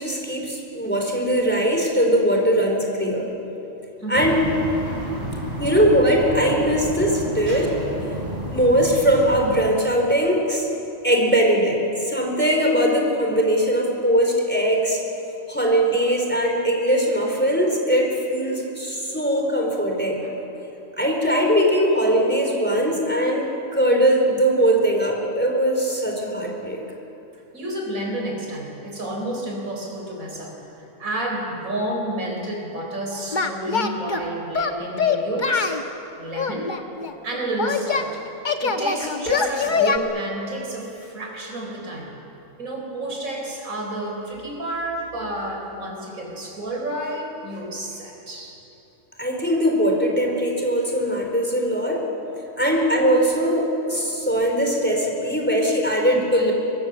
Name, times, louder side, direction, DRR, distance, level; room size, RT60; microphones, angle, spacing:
voice 1, 0.0-3.3 4.1-4.3 5.6-7.7 8.5-10.7 11.0-15.0 15.5-20.2 21.0-26.8 49.2-52.0 52.6-56.5, equal, 5° left, 0 dB, 4.1 m, -20 dB
voice 2, 4.0-4.3 5.6-5.8 7.5-7.7 20.2-20.3 27.5-35.8 36.2-36.7 37.2-38.2 38.6-42.1 42.6-48.5, right 1 dB, 85° right, 1 dB, 4.6 m, -30 dB
sound 1, 4.1-9.7, right 1 dB, 30° right, 3.8 m, -31 dB
Singing, 33.3-34.2 34.5-35.8 36.4-38.1 38.5-40.0, left 5 dB, 35° left, 1.3 m, -23 dB
23.5 x 23.0 x 7.7 m, 3.0 s
omnidirectional pair, 1.4 m